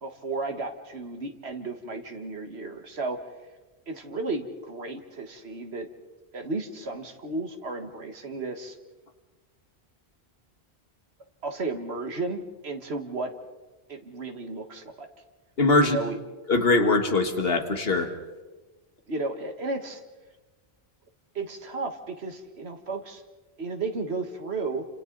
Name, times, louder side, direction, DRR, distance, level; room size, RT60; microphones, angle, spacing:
voice 1, 0.0-3.2 3.9-5.9 6.3-8.8 11.4-13.3 13.9-15.1 15.8-16.2 19.1-20.0 21.4-23.2 23.6-24.9, right 3 dB, 75° right, 5 dB, 2.0 m, -33 dB
voice 2, 15.6-16.0 16.5-18.1, left 3 dB, 65° left, 6 dB, 2.0 m, -22 dB
29.0 x 27.0 x 4.0 m, 1.2 s
omnidirectional pair, 1.1 m